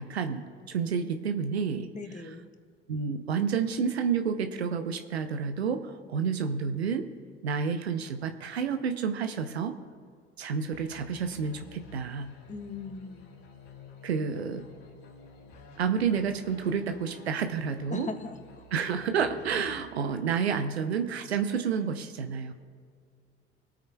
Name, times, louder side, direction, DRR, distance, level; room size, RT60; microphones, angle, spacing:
voice 1, 0.0-1.9 2.9-7.1 7.4-9.7 10.4-12.3 14.0-14.6 15.8-18.1 18.7-22.5, right 6 dB, 90° right, 8 dB, 0.7 m, -30 dB
voice 2, 1.9-2.4 12.5-13.3 17.9-18.4, left 4 dB, 25° left, 6 dB, 1.3 m, -38 dB
sound 1, 10.7-19.7, left 4 dB, 70° left, 3.4 m, -51 dB
24.5 x 8.7 x 2.2 m, 2.1 s
figure-of-eight pair, 55°, 31 cm